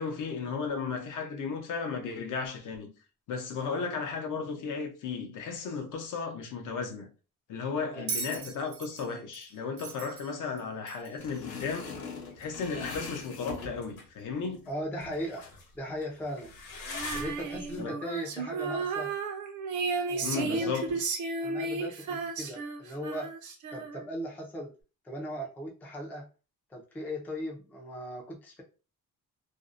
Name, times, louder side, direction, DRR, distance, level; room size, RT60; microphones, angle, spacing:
voice 1, 0.0-2.9 3.3-7.1 7.5-11.9 12.4-14.7 17.8-18.0 20.2-21.0, left 5 dB, 60° left, 0.6 m, -35 dB
Bell, 8.1-11.3 12.4-12.5, right 5 dB, 85° right, 0.8 m, -39 dB
sound 1, 11.2-14.0 14.7-14.8 15.0-15.6 15.9-17.8, left 4 dB, 80° left, 1.0 m, -42 dB
voice 2, 14.7-15.4 15.7-16.5 17.1-19.1 20.1-21.0 21.4-23.3 23.7-24.7 25.0-26.2 26.7-28.6, equal, 5° left, 0.3 m, -38 dB
Female singing, 16.9-24.2, right 4 dB, 55° right, 0.5 m, -34 dB
2.5 x 2.0 x 2.4 m
cardioid pair, 165°, 35 cm